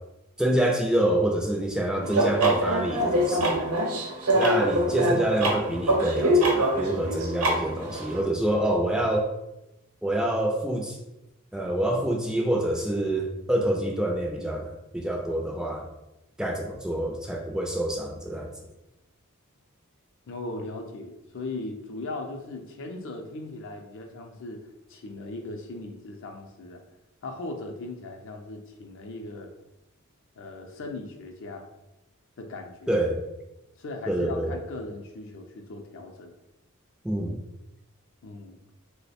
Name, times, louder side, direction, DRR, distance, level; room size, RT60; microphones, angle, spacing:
voice 1, 0.4-3.6 4.3-9.3 10.0-11.0 11.5-15.9 16.4-18.5 32.9-33.2 34.1-34.5 37.0-37.4, right 1 dB, 5° right, 0 dB, 0.3 m, -26 dB
sound 1, 2.0-8.2, right 1 dB, 85° right, 0.8 m, -24 dB
voice 2, 20.3-26.8 27.2-29.5 30.4-31.6 32.4-32.9 33.8-36.3 38.2-38.6, left 2 dB, 60° left, 3 dB, 0.5 m, -38 dB
3.0 x 2.1 x 4.1 m, 0.92 s
head